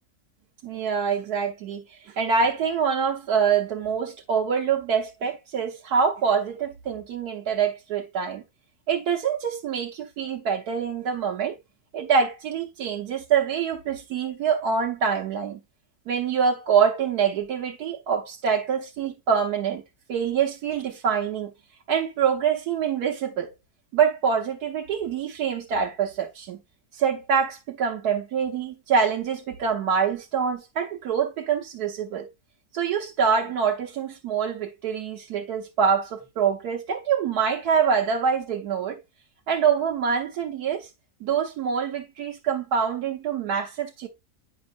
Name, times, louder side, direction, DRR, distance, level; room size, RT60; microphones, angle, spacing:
voice 1, 0.6-8.4 8.9-11.6 11.9-15.6 16.1-19.8 20.1-21.5 21.9-23.5 23.9-26.6 26.9-32.3 32.7-39.0 39.5-40.9 41.2-44.1, right 6 dB, 85° right, 1.4 m, -25 dB
9.4 x 5.2 x 2.5 m
omnidirectional pair, 1.6 m